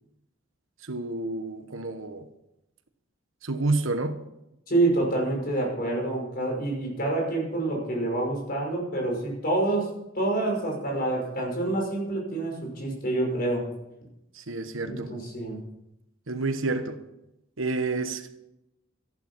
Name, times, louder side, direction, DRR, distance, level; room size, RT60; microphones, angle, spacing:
voice 1, 0.8-2.3 3.4-4.2 14.3-15.1 16.3-17.0 17.6-18.3, right 3 dB, 70° right, 1.2 m, -29 dB
voice 2, 4.7-9.9 10.1-13.6 14.8-15.6, right 2 dB, 50° left, 5.6 m, -27 dB
14.0 x 11.5 x 6.2 m
head